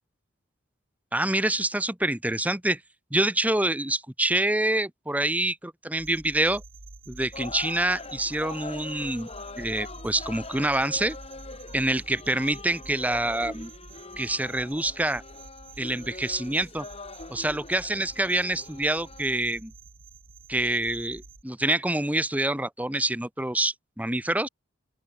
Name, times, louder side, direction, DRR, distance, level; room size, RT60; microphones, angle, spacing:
voice 1, 1.1-2.8 3.1-6.6 7.1-9.3 9.6-11.2 11.7-13.7 14.2-15.2 15.8-16.9 17.3-19.7 20.5-24.5, right 1 dB, 10° right, 1.4 m, -26 dB
sound 1, 6.0-21.4, right 3 dB, 75° right, 3.3 m, -48 dB
sound 2, 7.3-19.4, left 3 dB, 30° left, 1.8 m, -43 dB
open air
head